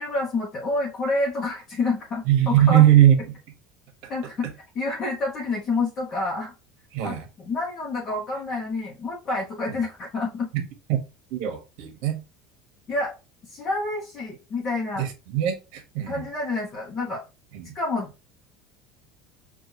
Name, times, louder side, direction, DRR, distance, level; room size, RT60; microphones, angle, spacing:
voice 1, 0.0-2.8 4.1-4.5 4.7-6.5 7.0-10.5 12.9-13.1 13.5-15.0 16.1-17.2 17.7-18.2, left 3 dB, 30° left, 0.9 m, -28 dB
voice 2, 2.3-3.4 6.9-7.3 10.5-10.6 10.9-11.0 11.3-12.2 15.0-16.2 17.5-17.8, right 12 dB, 65° right, 1.2 m, -20 dB
5.5 x 2.4 x 2.9 m
cardioid pair, 165°, 0 cm